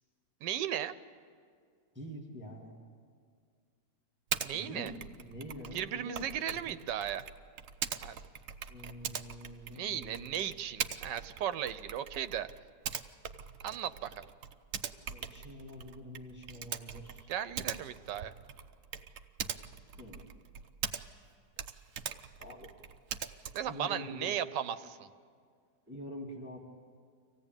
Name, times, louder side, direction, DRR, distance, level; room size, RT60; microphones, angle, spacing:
voice 1, 0.4-0.9 4.4-4.9 5.7-7.2 8.0-8.2 9.7-12.5 13.6-14.3 17.3-18.3 23.5-25.1, right 10 dB, 80° right, 13 dB, 1.4 m, -36 dB
voice 2, 1.9-2.8 4.5-6.8 7.9-8.0 8.7-10.5 15.1-17.3 20.0-20.3 22.4-22.7 23.7-24.4 24.8-24.9 25.9-26.6, equal, 5° right, -1 dB, 1.9 m, -46 dB
Typing, 4.3-4.5 4.9-21.3 21.5-23.8, right 8 dB, 60° right, 1.0 m, -42 dB
24.5 x 16.5 x 9.0 m, 2.1 s
omnidirectional pair, 1.9 m